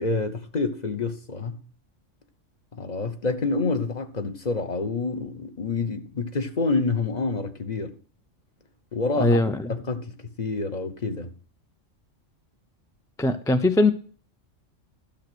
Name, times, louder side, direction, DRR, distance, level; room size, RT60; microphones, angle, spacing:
voice 1, 0.0-1.6 2.7-7.9 8.9-9.4 9.7-10.1 10.4-11.3, left 3 dB, 35° left, 1.1 m, -27 dB
voice 2, 9.2-9.7 13.2-13.9, left 2 dB, 5° left, 0.3 m, -21 dB
12.5 x 6.6 x 6.1 m
omnidirectional pair, 1.3 m